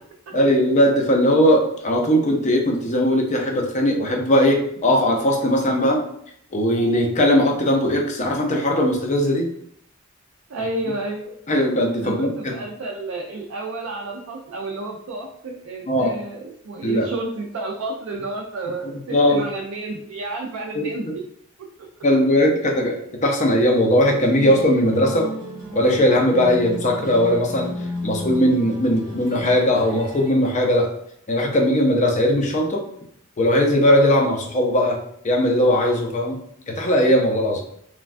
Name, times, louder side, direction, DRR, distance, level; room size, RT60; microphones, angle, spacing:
voice 1, 0.3-6.0 6.5-9.5 11.5-12.3 15.9-16.1 16.8-17.1 19.1-19.4 20.7-20.9 22.0-25.3 25.7-27.7 28.0-30.9 31.3-32.8 33.4-35.0 35.2-36.4 36.7-37.6, equal, 35° left, 1 dB, 0.5 m, -19 dB
voice 2, 10.5-11.3 12.0-21.1 21.6-21.9 37.5-37.6, right 2 dB, 70° right, -1 dB, 0.4 m, -31 dB
sound 1, 24.0-30.3, left 1 dB, 15° right, 0.9 m, -34 dB
3.2 x 2.2 x 2.4 m, 0.70 s
head